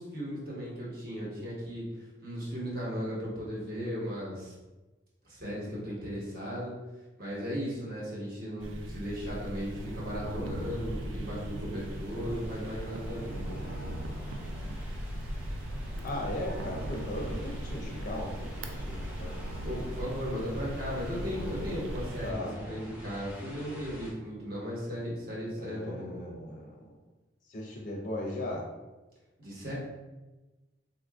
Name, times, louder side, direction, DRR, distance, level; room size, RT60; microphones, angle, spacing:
voice 1, 0.0-1.8 2.2-4.5 5.2-6.7 7.2-13.6 19.6-26.2 29.4-29.7, equal, 50° right, -6 dB, 1.1 m, -36 dB
sound 1, 8.6-22.3, right 1 dB, 85° right, 0.4 m, -38 dB
sound 2, 10.5-24.1, equal, 10° right, 0.6 m, -48 dB
voice 2, 16.0-19.4 22.2-22.8 25.6-26.9 27.5-28.6, left 1 dB, 45° left, -1 dB, 0.4 m, -38 dB
3.7 x 2.5 x 2.3 m, 1.1 s
head